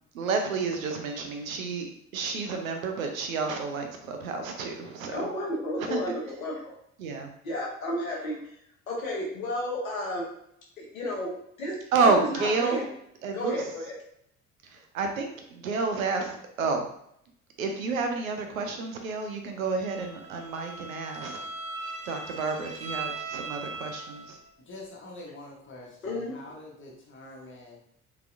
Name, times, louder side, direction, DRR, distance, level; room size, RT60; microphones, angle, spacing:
voice 1, 0.1-1.9 2.1-5.3 5.8-6.1 7.0-7.3 11.9-12.9 13.2-13.7 14.6-16.9 17.6-21.4 22.0-24.4, right 4 dB, 75° right, 4 dB, 0.6 m, -30 dB
voice 2, 5.1-6.7 7.4-8.5 8.9-10.3 10.8-11.3 11.6-11.7 12.0-12.9 13.3-13.9 26.0-26.3, left 1 dB, 75° left, -2 dB, 1.0 m, -32 dB
Bowed string instrument, 19.8-24.5, right 3 dB, 15° right, 0.5 m, -39 dB
voice 3, 24.6-27.8, left 2 dB, 30° left, -2 dB, 1.3 m, -45 dB
3.9 x 2.8 x 2.5 m, 0.71 s
figure-of-eight pair, 55°, 42 cm